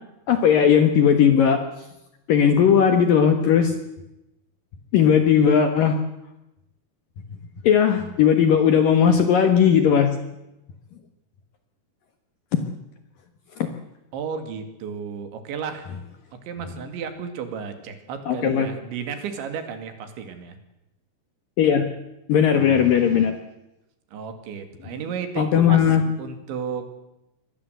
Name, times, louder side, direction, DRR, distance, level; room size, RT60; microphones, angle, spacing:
voice 1, 0.3-1.6 2.3-3.7 4.9-6.0 7.6-10.1 12.5-12.6 13.6-13.7 18.3-18.7 21.6-21.9 22.3-23.4 25.4-26.0, left 8 dB, 60° left, 7 dB, 2.5 m, -17 dB
voice 2, 14.1-15.9 16.4-20.6 22.5-23.0 24.1-27.0, right 6 dB, 70° right, 8 dB, 4.5 m, -33 dB
24.5 x 19.5 x 8.1 m, 0.91 s
omnidirectional pair, 5.6 m